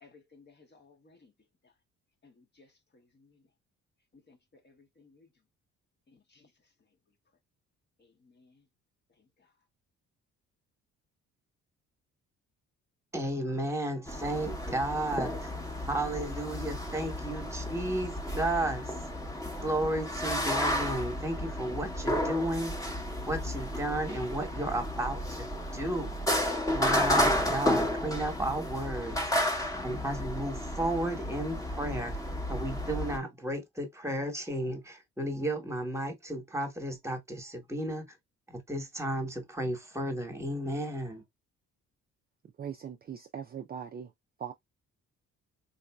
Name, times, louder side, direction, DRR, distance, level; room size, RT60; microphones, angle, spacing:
voice 1, 0.0-1.3 1.6-1.7 2.2-3.4 4.1-5.3 6.1-6.5 8.0-8.6 9.2-9.5, left 4 dB, 35° left, 0.9 m, -61 dB
voice 2, 13.1-15.5 15.9-18.9 19.6-22.7 23.3-26.1 26.7-29.2 29.8-32.2 32.5-38.1 38.5-41.2, right 1 dB, 10° right, 1.1 m, -33 dB
sound 1, 14.1-33.2, left 1 dB, 10° left, 0.9 m, -32 dB
voice 3, 42.6-44.1 44.4-44.5, right 8 dB, 30° right, 0.4 m, -40 dB
3.9 x 2.5 x 2.2 m
cardioid pair, 90°, 30 cm